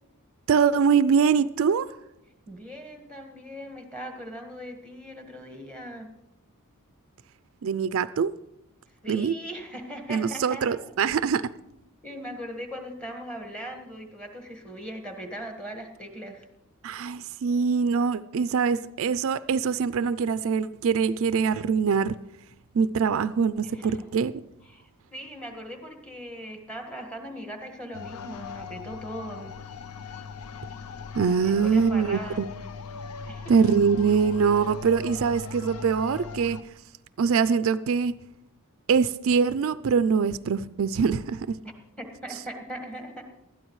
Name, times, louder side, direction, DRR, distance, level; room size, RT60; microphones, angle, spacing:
voice 1, 0.5-1.9 7.6-8.3 9.1-9.3 10.1-11.5 16.8-22.1 22.7-24.3 31.1-32.5 33.5-36.6 37.2-38.1 38.9-41.6, right 6 dB, 65° right, 14 dB, 0.4 m, -23 dB
voice 2, 2.5-6.1 9.0-10.9 12.0-16.5 23.6-24.0 24.6-29.5 31.4-32.4 33.3-33.5 42.0-43.2, equal, 5° left, 4 dB, 1.5 m, -39 dB
sound 1, 27.9-36.6, left 5 dB, 85° left, 0.6 m, -39 dB
19.5 x 12.5 x 3.1 m, 0.88 s
head